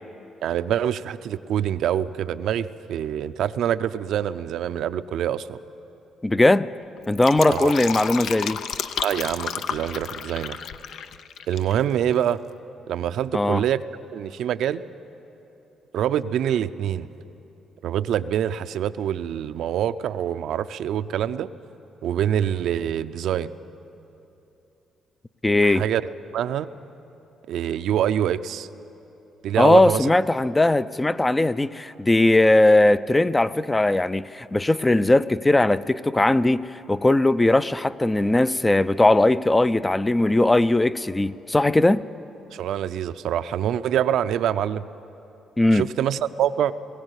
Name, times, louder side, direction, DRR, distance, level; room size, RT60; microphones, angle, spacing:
voice 1, 0.4-5.6 7.5-7.7 9.0-10.6 11.5-12.4 12.9-13.8 14.1-14.8 15.9-17.1 17.8-21.5 22.0-23.5 25.6-26.0 26.3-26.7 27.5-28.7 29.4-30.1 42.5-44.9 45.7-46.7, right 10 dB, 75° right, 12 dB, 0.5 m, -25 dB
voice 2, 6.2-6.7 7.1-8.6 13.3-13.6 25.4-25.8 29.6-42.0 45.6-45.9, left 2 dB, 15° left, 14 dB, 0.4 m, -19 dB
Fill (with liquid), 7.0-11.8 12.0-12.1, left 8 dB, 70° left, 0.6 m, -32 dB
20.0 x 16.0 x 8.2 m, 2.9 s
cardioid pair, 90°, 0 cm